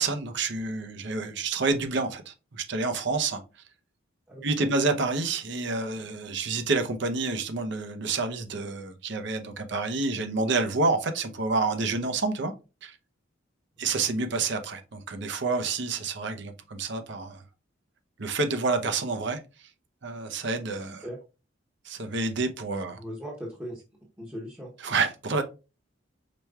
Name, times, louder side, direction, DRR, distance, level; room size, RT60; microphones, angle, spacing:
voice 1, 0.0-3.4 4.4-12.5 12.8-13.0 13.8-17.4 18.2-19.4 20.0-21.1 21.8-23.0 24.8-25.4, right 3 dB, 65° right, 0.8 m, -28 dB
voice 2, 4.3-4.7 13.8-13.9 21.0-21.2 23.0-23.8 24.2-24.7, equal, 10° right, 0.9 m, -38 dB
5.0 x 4.4 x 2.3 m
head